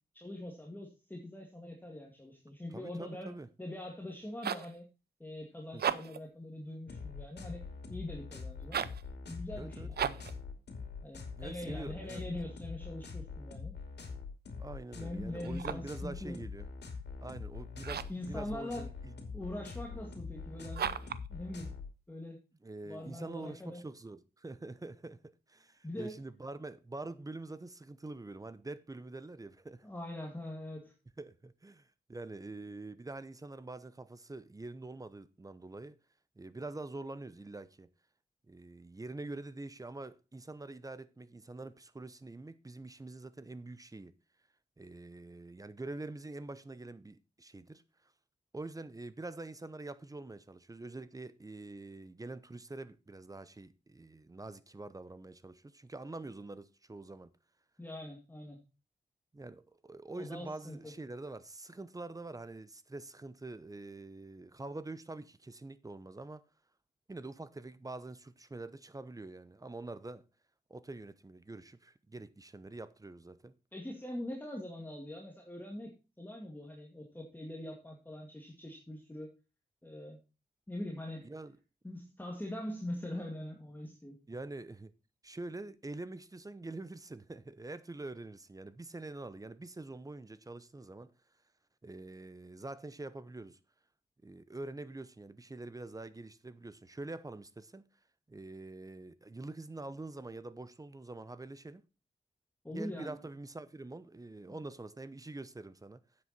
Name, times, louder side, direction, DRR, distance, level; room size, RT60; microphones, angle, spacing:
voice 1, 0.1-4.9 5.2-7.6 7.9-8.8 9.3-10.2 11.0-13.7 14.9-16.4 18.1-18.9 19.3-21.7 22.1-22.4 22.9-23.8 25.8-26.2 29.8-30.9 57.8-58.6 60.2-60.9 73.7-75.9 76.2-79.3 79.8-80.2 80.7-81.3 81.8-84.2 102.6-103.2 104.5-104.6, left 1 dB, 10° left, 2.1 m, -43 dB
voice 2, 2.7-3.5 5.7-6.0 9.6-9.9 11.4-12.6 14.6-16.7 17.2-19.1 19.6-19.7 22.6-29.9 31.2-36.0 36.4-37.9 38.5-44.1 44.8-48.1 48.5-57.3 59.3-66.4 67.1-70.2 70.7-73.6 81.2-81.6 84.3-84.9 85.2-91.1 91.8-93.6 94.2-97.8 98.3-101.8 102.7-106.0, right 2 dB, 20° right, 0.8 m, -45 dB
sound 1, 4.1-4.8 5.7-6.3 8.6-9.1 9.9-10.4 15.4-16.0 17.8-18.3 20.7-21.3, right 8 dB, 70° right, 0.6 m, -36 dB
sound 2, 6.9-21.9, left 4 dB, 90° left, 2.4 m, -44 dB
9.6 x 7.8 x 4.1 m
wide cardioid pair, 90°, 17 cm